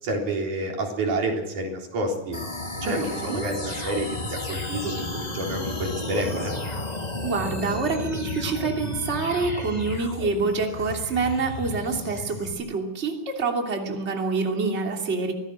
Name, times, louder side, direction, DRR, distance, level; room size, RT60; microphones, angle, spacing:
voice 1, 0.0-2.4 2.8-6.5, right 1 dB, 80° right, 1 dB, 5.3 m, -29 dB
sound 1, 2.3-12.5, left 2 dB, 15° left, 2.7 m, -33 dB
voice 2, 2.8-3.4 7.2-15.3, right 4 dB, 20° right, 2 dB, 3.0 m, -27 dB
24.0 x 17.5 x 6.5 m, 0.94 s
omnidirectional pair, 3.4 m